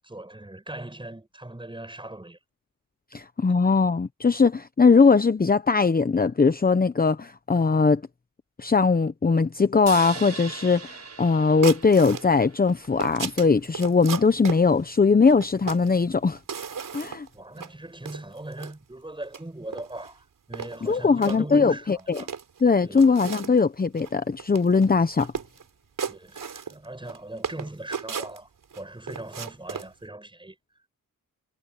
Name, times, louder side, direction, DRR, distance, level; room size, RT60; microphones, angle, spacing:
voice 1, 0.0-2.4 17.3-22.3 22.8-23.2 26.0-28.5 28.7-30.6, right 1 dB, 15° right, 6.6 m, -39 dB
voice 2, 3.1-8.0 8.6-16.4 16.9-17.3 20.8-22.2 22.6-25.3, left 4 dB, 25° left, 1.0 m, -20 dB
sound 1, 9.9-13.3, right 5 dB, 50° right, 6.9 m, -40 dB
sound 2, 11.6-12.3 12.7-14.6 15.3-15.9 16.4-17.3 17.6-17.7 18.1-18.7 19.2-19.4 19.7-20.1 20.5-21.4 22.0-22.6 23.0-23.6 24.0-24.1 24.4-24.9 25.2-25.6 26.0-27.2 27.4-28.8 29.1-29.9, right 6 dB, 65° right, 4.6 m, -35 dB
cardioid pair, 75°, 34 cm